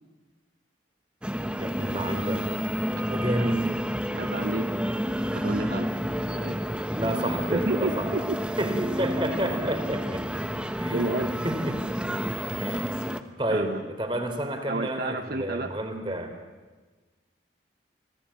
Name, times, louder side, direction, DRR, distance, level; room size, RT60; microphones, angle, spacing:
sound 1, 1.2-13.2, equal, 5° right, 1.0 m, -30 dB
voice 1, 1.6-2.4 3.1-3.7 6.9-8.1 8.6-10.2 10.8-11.2 11.4-11.8 12.6-13.1 13.4-16.3, right 1 dB, 25° right, 6 dB, 3.3 m, -30 dB
voice 2, 4.2-4.7 5.3-5.9 6.2-6.6 7.5-8.4 10.4-10.5 10.9-11.3 13.5-13.8 14.7-15.8, right 2 dB, 50° right, 6 dB, 0.9 m, -31 dB
26.0 x 18.0 x 8.6 m, 1.3 s
head